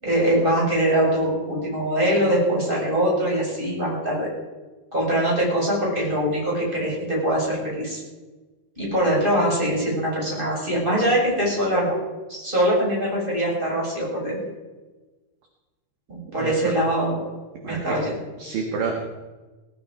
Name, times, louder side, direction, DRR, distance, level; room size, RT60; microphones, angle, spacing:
voice 1, 0.0-4.3 4.9-8.0 8.8-12.0 12.3-14.4 16.1-17.2 17.6-18.0, right 1 dB, 10° right, -4 dB, 6.5 m, -23 dB
voice 2, 16.3-16.7 17.6-18.0 18.4-19.0, right 5 dB, 60° right, 1 dB, 3.1 m, -29 dB
21.0 x 14.0 x 4.9 m, 1.2 s
omnidirectional pair, 5.3 m